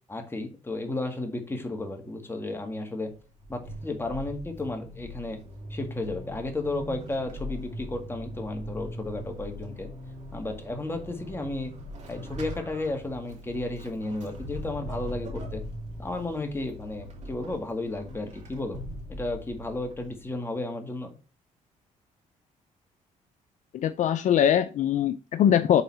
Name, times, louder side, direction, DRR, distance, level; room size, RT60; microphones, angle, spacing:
voice 1, 0.1-3.1 3.5-5.4 5.7-9.9 10.3-11.7 12.1-15.6 16.0-18.8 19.1-21.2, left 2 dB, 15° left, 1.9 m, -33 dB
Vehicle / Accelerating revving vroom / Squeak, 3.1-20.3, equal, 55° right, 2.8 m, -41 dB
voice 2, 23.7-25.8, left 9 dB, 65° left, 0.5 m, -22 dB
6.9 x 4.0 x 4.6 m
cardioid pair, 90°, 14 cm